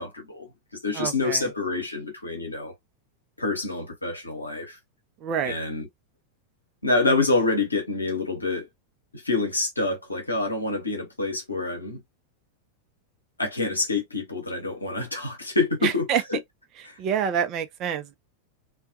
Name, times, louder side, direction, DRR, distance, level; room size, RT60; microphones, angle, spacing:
voice 1, 0.0-2.7 3.4-4.8 5.4-5.9 6.8-8.7 9.1-12.0 13.4-16.4 16.8-17.0, left 3 dB, 80° left, 0.9 m, -27 dB
voice 2, 0.9-1.5 5.2-5.5 15.8-16.2 17.0-18.1, right 8 dB, 35° right, 0.5 m, -27 dB
2.3 x 2.2 x 2.5 m
figure-of-eight pair, 90°, 0 cm